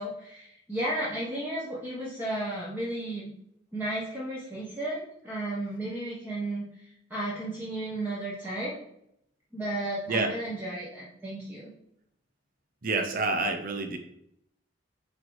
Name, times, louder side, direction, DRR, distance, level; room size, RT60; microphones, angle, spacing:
voice 1, 0.0-3.3 3.7-8.7 9.5-11.7, right 1 dB, 10° right, -7 dB, 1.3 m, -34 dB
voice 2, 12.8-14.0, right 3 dB, 45° right, 6 dB, 0.8 m, -28 dB
8.3 x 3.2 x 4.8 m, 0.76 s
head